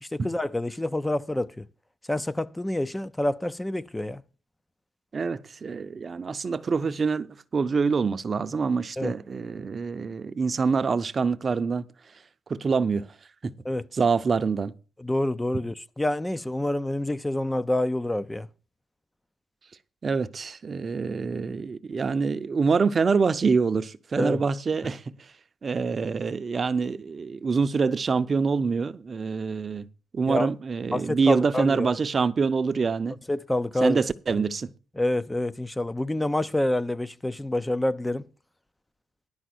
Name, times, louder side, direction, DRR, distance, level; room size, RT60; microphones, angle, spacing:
voice 1, 0.0-1.6 2.1-4.2 9.0-9.1 13.6-13.9 15.0-18.5 24.2-24.4 30.3-30.5 30.9-31.9 33.3-34.0 34.3-34.4 35.0-38.3, left 1 dB, 10° left, 0.5 m, -27 dB
voice 2, 5.1-11.9 12.5-13.1 13.4-13.5 13.9-14.7 20.0-25.1 25.6-29.9 30.1-33.2 33.8-34.7, right 5 dB, 40° right, 0.6 m, -25 dB
11.0 x 5.0 x 7.8 m
cardioid pair, 90°, 0 cm